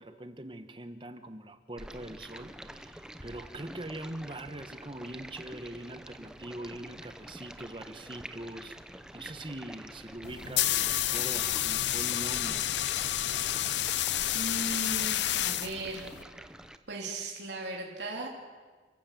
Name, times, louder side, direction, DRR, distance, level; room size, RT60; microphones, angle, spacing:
voice 1, 0.0-12.7, right 1 dB, 30° right, 9 dB, 1.2 m, -42 dB
Stream, 1.8-16.8, right 1 dB, 5° right, 0.8 m, -47 dB
sound 1, 10.2-16.2, left 13 dB, 80° left, 0.6 m, -30 dB
voice 2, 14.3-16.1 16.9-18.3, right 2 dB, 85° right, -2 dB, 3.4 m, -37 dB
29.5 x 15.0 x 7.7 m, 1.4 s
head